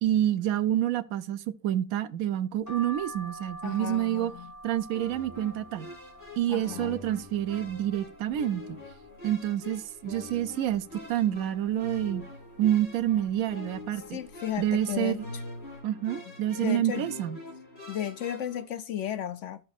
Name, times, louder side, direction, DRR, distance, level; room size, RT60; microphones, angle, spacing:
voice 1, 0.0-4.3 4.6-5.9 6.4-8.8 9.2-12.2 12.6-14.2 14.6-15.2 15.8-17.4, right 12 dB, 75° right, 1.1 m, -28 dB
sound 1, 2.7-8.3 8.8-9.6 10.0-10.1 10.2-11.4 11.8-12.2 13.0-13.3 14.1-14.3 14.6-14.8, right 1 dB, 10° left, 4.5 m, -46 dB
voice 2, 3.6-4.5 6.5-7.0 11.3-11.4 14.1-15.4 16.6-17.1 17.9-19.6, left 10 dB, 65° left, 0.9 m, -34 dB
sound 2, 4.9-18.6, left 2 dB, 45° left, 3.8 m, -44 dB
13.0 x 6.3 x 2.4 m
omnidirectional pair, 1.5 m